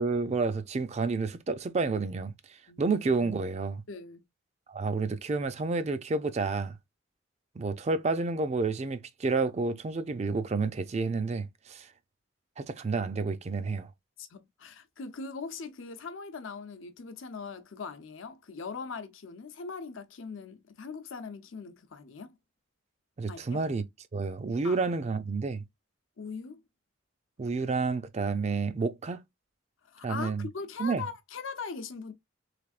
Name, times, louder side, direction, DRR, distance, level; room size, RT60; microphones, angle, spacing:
voice 1, 0.0-2.3 2.8-3.8 4.7-6.8 7.6-11.9 12.6-13.9 23.2-23.8 24.1-25.6 27.4-29.2 30.0-30.5 30.8-31.0, right 4 dB, 35° right, 0.4 m, -30 dB
voice 2, 3.9-4.2 14.2-22.4 23.3-23.6 24.6-24.8 26.2-26.6 29.8-32.1, left 5 dB, 85° left, 0.7 m, -41 dB
3.5 x 3.3 x 2.4 m
head